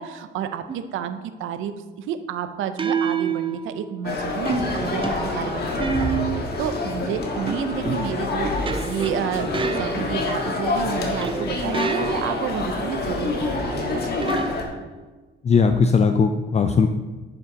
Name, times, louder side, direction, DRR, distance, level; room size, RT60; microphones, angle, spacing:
voice 1, 0.0-5.7 6.0-6.2 6.6-14.3, right 8 dB, 85° right, 10 dB, 0.6 m, -30 dB
sound 1, 0.7-1.0 2.8-4.0 4.5-6.6 7.5-10.5 11.2-12.5 14.2-15.1, right 5 dB, 25° right, 0.6 m, -29 dB
sound 2, 4.0-14.6, left 3 dB, 55° left, 1.6 m, -27 dB
voice 2, 15.4-16.9, left 5 dB, 35° left, 7 dB, 0.5 m, -18 dB
10.5 x 5.4 x 4.1 m, 1.3 s
cardioid pair, 90°, 20 cm